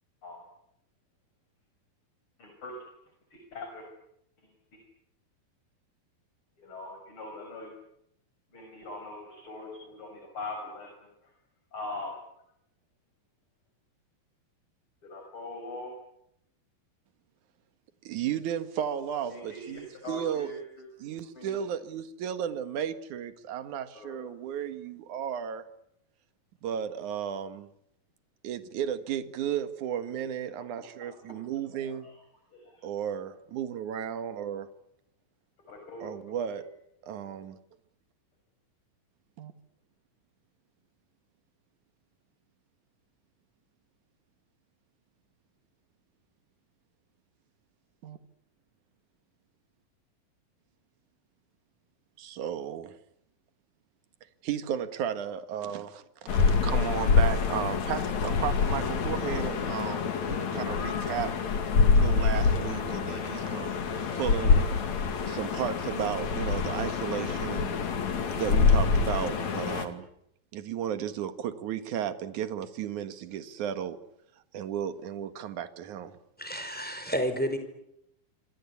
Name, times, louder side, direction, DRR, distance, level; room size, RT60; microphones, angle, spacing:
voice 1, 2.4-2.8 3.3-3.8 6.6-7.7 8.5-10.9 11.7-12.1 15.0-15.9 19.3-20.9 21.3-21.6 23.9-24.3 31.0-31.2 31.7-32.0 32.5-32.9 35.7-36.1 36.6-36.7, left 2 dB, 35° left, 3 dB, 6.5 m, -41 dB
voice 2, 18.0-20.5 21.0-25.6 26.6-27.7 28.4-32.1 32.8-34.7 36.0-36.7 37.0-37.6 39.4-39.5 48.0-48.2 52.2-53.0 54.4-61.3 61.9-63.8 64.1-64.7 65.2-67.8 68.3-70.1 70.5-74.0 74.5-76.2, right 9 dB, 60° right, 10 dB, 2.9 m, -34 dB
sound 1, 56.3-69.9, left 5 dB, 55° left, 3.5 m, -26 dB
voice 3, 76.4-77.6, equal, ahead, 8 dB, 4.7 m, -30 dB
27.5 x 25.5 x 8.5 m, 0.79 s
omnidirectional pair, 4.2 m